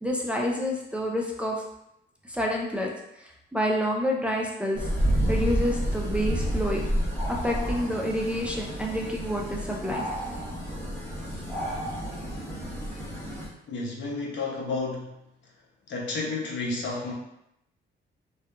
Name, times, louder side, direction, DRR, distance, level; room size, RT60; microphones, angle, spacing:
voice 1, 0.0-1.6 2.3-2.9 3.2-4.8 5.3-6.9 7.3-10.1, equal, 5° right, -2 dB, 0.4 m, -28 dB
sound 1, 4.7-13.5, equal, 10° left, 0.9 m, -30 dB
voice 2, 13.7-15.2 15.9-17.1, left 3 dB, 65° left, -2 dB, 0.7 m, -31 dB
2.7 x 2.3 x 2.3 m, 0.80 s
cardioid pair, 90°, 20 cm